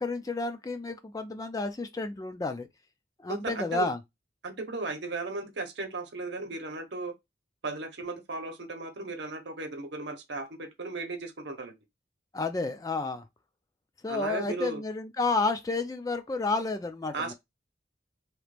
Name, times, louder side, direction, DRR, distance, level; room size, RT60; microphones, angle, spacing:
voice 1, 0.0-2.7 3.2-4.0 12.3-13.2 14.0-17.3, left 3 dB, 20° left, 0.3 m, -31 dB
voice 2, 3.3-3.9 4.4-7.1 7.6-11.7 14.1-14.8 17.1-17.3, right 3 dB, 75° right, 0.8 m, -36 dB
2.9 x 2.4 x 3.3 m
head